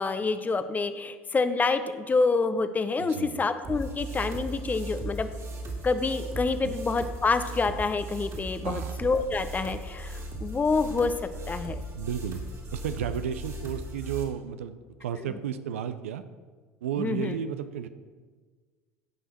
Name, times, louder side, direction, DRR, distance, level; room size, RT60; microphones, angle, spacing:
voice 1, 0.0-5.3 5.8-11.1 11.5-11.8 15.2-15.4 17.0-17.4, left 4 dB, 20° left, 11 dB, 0.7 m, -27 dB
voice 2, 3.1-3.4 6.6-6.7 8.6-9.0 11.9-12.4 12.7-16.2 16.8-17.9, right 8 dB, 80° right, 11 dB, 0.5 m, -33 dB
sound 1, 3.6-14.2, right 1 dB, 40° right, 2.5 m, -37 dB
16.0 x 5.6 x 4.3 m, 1.5 s
hypercardioid pair, 70°, 7 cm